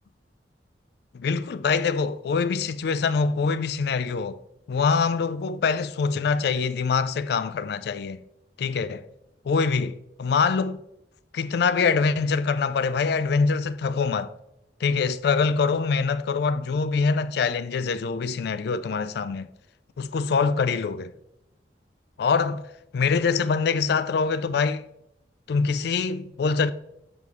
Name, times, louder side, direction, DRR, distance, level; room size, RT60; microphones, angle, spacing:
voice 1, 1.1-4.4 4.7-8.2 8.6-9.0 9.5-9.9 10.2-10.8 11.3-14.3 14.8-19.5 20.0-21.1 22.2-22.6 22.9-24.8 25.5-26.7, left 5 dB, 65° left, 0.3 m, -24 dB
6.8 x 5.3 x 3.1 m
head